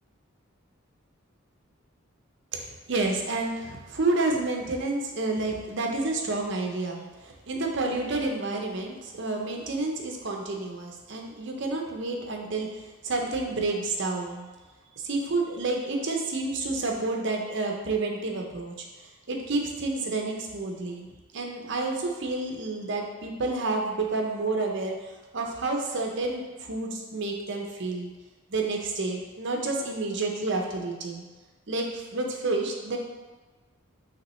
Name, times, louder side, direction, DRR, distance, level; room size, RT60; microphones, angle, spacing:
voice 1, 2.5-14.5 15.0-21.1 21.3-28.1 28.5-31.2 31.7-33.0, right 3 dB, 55° right, 1 dB, 0.6 m, -30 dB
5.8 x 2.9 x 3.1 m, 1.3 s
head